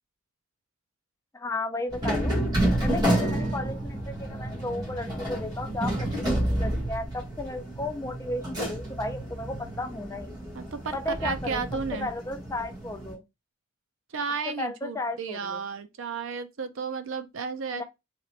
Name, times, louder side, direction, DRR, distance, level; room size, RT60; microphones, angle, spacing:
voice 1, 1.3-2.4 2.8-10.3 10.9-11.6 11.9-13.2 14.5-15.6 17.7-17.8, left 2 dB, 15° left, 0.4 m, -34 dB
sound 1, 1.9-13.1, right 1 dB, 20° right, 1.2 m, -30 dB
voice 2, 10.5-12.1 14.1-17.8, right 5 dB, 70° right, 0.5 m, -33 dB
3.0 x 3.0 x 3.9 m
head